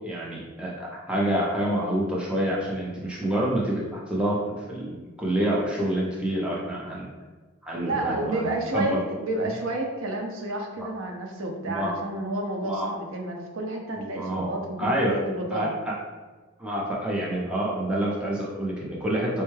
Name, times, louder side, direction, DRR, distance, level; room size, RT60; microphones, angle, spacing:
voice 1, 0.0-7.1 7.6-8.5 8.7-9.0 10.8-10.9 11.6-12.0 12.6-12.9 14.0-14.5 14.8-15.2 15.5-16.0 16.6-19.4, right 1 dB, 5° right, -5 dB, 0.5 m, -27 dB
voice 2, 7.8-15.7, right 1 dB, 85° right, 2 dB, 0.6 m, -30 dB
4.4 x 2.2 x 3.1 m, 1.3 s
head